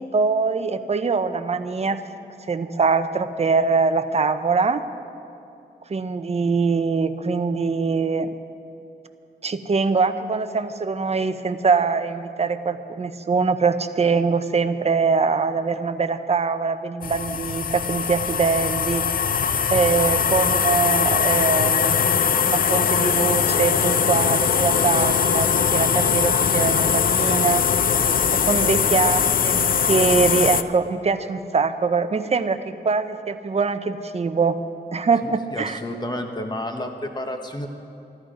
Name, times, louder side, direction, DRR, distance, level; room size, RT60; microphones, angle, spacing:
voice 1, 0.0-2.0 2.5-4.8 5.9-8.3 9.4-19.1 19.7-22.2 22.5-27.6 28.3-34.6 34.9-35.8, right 4 dB, 35° right, 10 dB, 0.6 m, -23 dB
sound 1, 17.0-30.6, left 7 dB, 55° left, 0.5 m, -21 dB
voice 2, 35.5-37.7, left 1 dB, 25° left, 4 dB, 1.2 m, -30 dB
14.0 x 13.0 x 5.1 m, 2.7 s
wide cardioid pair, 95°, 18 cm